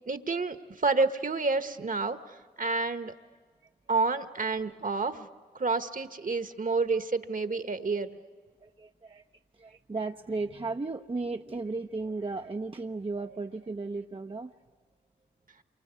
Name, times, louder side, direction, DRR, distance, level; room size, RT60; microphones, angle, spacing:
voice 1, 0.1-3.1 3.9-5.3 5.5-8.2, right 3 dB, 50° right, 9 dB, 1.5 m, -29 dB
voice 2, 8.6-9.2 9.6-14.5, right 3 dB, 30° right, 4 dB, 0.8 m, -35 dB
28.0 x 24.0 x 8.4 m, 1.5 s
cardioid pair, 45°, 18 cm